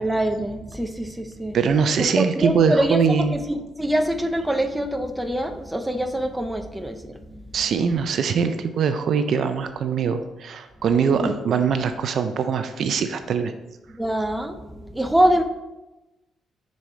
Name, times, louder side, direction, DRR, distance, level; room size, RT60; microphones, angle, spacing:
voice 1, 0.0-1.6 2.2-7.5 11.0-11.3 13.9-15.4, right 1 dB, 5° right, 6 dB, 0.6 m, -25 dB
voice 2, 1.5-3.4 7.5-13.5, right 6 dB, 60° right, 9 dB, 0.5 m, -22 dB
5.2 x 4.2 x 4.7 m, 1.0 s
cardioid pair, 90°, 0 cm